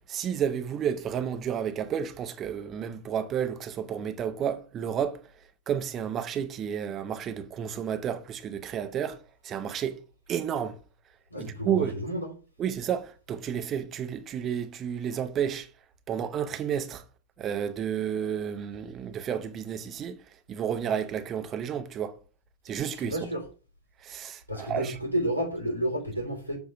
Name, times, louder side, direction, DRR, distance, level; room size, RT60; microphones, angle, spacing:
voice 1, 0.1-5.2 5.7-9.2 9.4-10.0 10.3-10.8 11.4-12.0 12.6-15.7 16.1-17.0 17.4-20.2 20.5-22.2 22.6-23.2 24.0-25.0, right 8 dB, 30° right, 0.8 m, -31 dB
voice 2, 11.3-12.3 23.1-23.4 24.5-26.6, right 1 dB, 85° left, 1.8 m, -30 dB
7.4 x 3.1 x 5.9 m
figure-of-eight pair, 90°, 0 cm